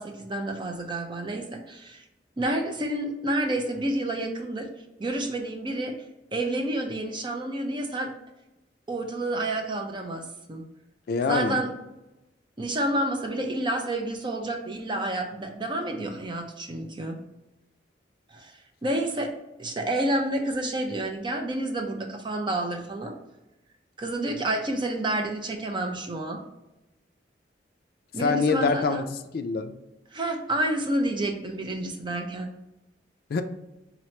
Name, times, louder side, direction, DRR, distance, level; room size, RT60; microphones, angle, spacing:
voice 1, 0.0-2.0 2.4-4.7 5.0-5.9 6.3-8.1 8.9-10.7 11.3-11.7 12.6-17.2 18.3-19.3 19.6-23.1 24.0-26.4 28.1-29.1 30.1-32.5, right 1 dB, 25° right, 3 dB, 0.5 m, -29 dB
voice 2, 11.1-11.6 28.2-29.8 33.3-33.4, left 4 dB, 60° left, 7 dB, 0.3 m, -25 dB
3.9 x 2.9 x 3.2 m, 0.95 s
head